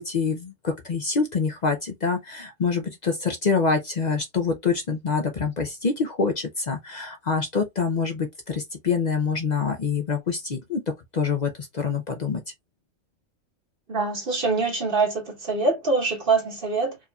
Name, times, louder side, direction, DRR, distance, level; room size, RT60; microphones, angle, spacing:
voice 1, 0.0-10.8 11.1-12.4, left 5 dB, 50° left, 0.6 m, -26 dB
voice 2, 13.9-17.0, right 3 dB, 45° right, 1.3 m, -24 dB
4.7 x 2.7 x 2.3 m
omnidirectional pair, 1.3 m